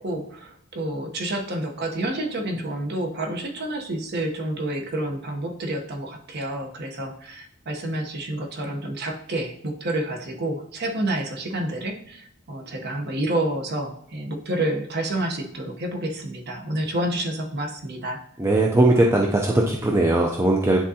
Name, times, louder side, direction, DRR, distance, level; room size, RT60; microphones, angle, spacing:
voice 1, 0.0-18.2, right 1 dB, 55° right, 3 dB, 1.0 m, -29 dB
voice 2, 18.4-20.8, right 2 dB, 15° right, -1 dB, 0.5 m, -19 dB
9.8 x 3.7 x 2.8 m, 0.68 s
head